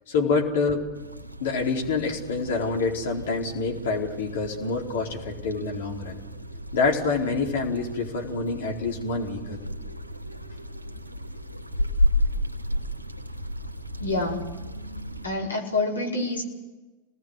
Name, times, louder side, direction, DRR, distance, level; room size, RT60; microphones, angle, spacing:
voice 1, 0.1-0.9 1.4-6.2 6.7-9.6, left 4 dB, 55° left, 1 dB, 4.4 m, -27 dB
sound 1, 0.9-15.3, left 1 dB, 85° right, 2.1 m, -32 dB
voice 2, 14.0-14.4 15.2-16.4, left 2 dB, 75° left, 0 dB, 5.0 m, -27 dB
28.0 x 19.5 x 8.1 m, 1.2 s
figure-of-eight pair, 90°, 0 cm